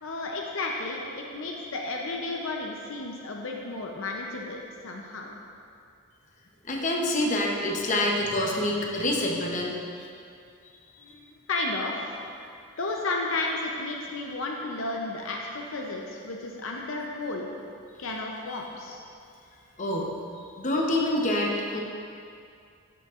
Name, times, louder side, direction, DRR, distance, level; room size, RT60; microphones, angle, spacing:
voice 1, 0.0-5.3 11.0-12.2 12.8-17.5 18.0-19.0, left 2 dB, 65° left, 0 dB, 0.7 m, -33 dB
voice 2, 6.7-9.7 19.8-20.1 20.6-21.8, left 1 dB, 35° left, -1 dB, 0.8 m, -26 dB
12.0 x 6.8 x 2.5 m, 2.4 s
head